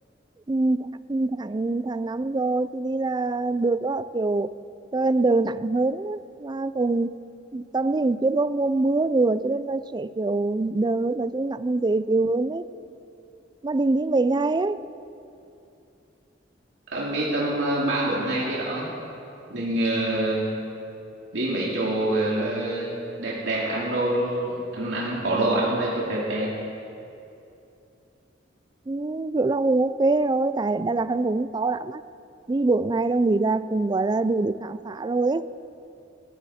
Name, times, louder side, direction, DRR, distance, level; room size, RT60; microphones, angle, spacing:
voice 1, 0.5-4.6 4.9-7.2 7.5-12.6 13.6-14.9 28.9-32.0 32.5-35.5, right 3 dB, 25° right, 15 dB, 0.4 m, -24 dB
voice 2, 16.9-18.8 19.5-20.5 21.3-22.9 23.2-26.5, right 1 dB, 90° right, -5 dB, 2.5 m, -25 dB
18.5 x 16.0 x 4.3 m, 2.7 s
head